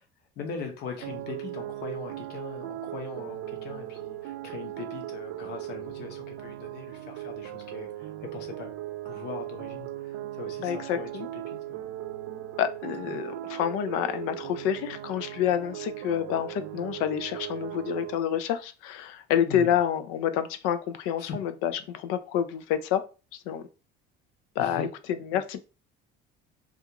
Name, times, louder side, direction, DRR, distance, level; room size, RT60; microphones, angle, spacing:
voice 1, 0.4-7.9 8.3-8.7 9.0-11.1 11.5-11.8 13.1-13.2 19.5-19.7 21.2-21.4 24.6-24.9, left 5 dB, 55° left, 0.8 m, -40 dB
sound 1, 1.0-18.2, right 14 dB, 65° right, 0.4 m, -38 dB
voice 2, 10.6-11.3 12.6-23.0 23.5-23.6 24.6-25.6, left 9 dB, 80° left, 0.4 m, -28 dB
2.4 x 2.3 x 2.8 m
cardioid pair, 145°, 21 cm